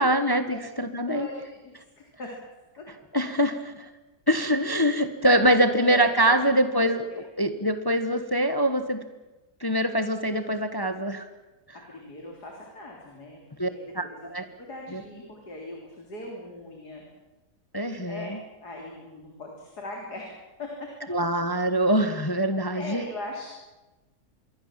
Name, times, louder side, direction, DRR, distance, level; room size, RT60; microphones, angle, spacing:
voice 1, 0.0-1.3 3.1-3.9 4.3-9.0 9.6-11.3 13.6-13.7 13.9-14.5 14.9-15.0 17.7-18.4 21.1-23.0, right 1 dB, 15° left, 9 dB, 1.2 m, -24 dB
voice 2, 1.0-2.3 2.8-2.9 5.6-6.4 6.7-7.2 11.9-14.3 14.6-17.0 18.1-18.4 18.6-20.3 20.6-21.1 22.7-23.5, left 2 dB, 80° left, 0 dB, 4.0 m, -40 dB
26.5 x 22.5 x 7.5 m, 1.1 s
omnidirectional pair, 1.7 m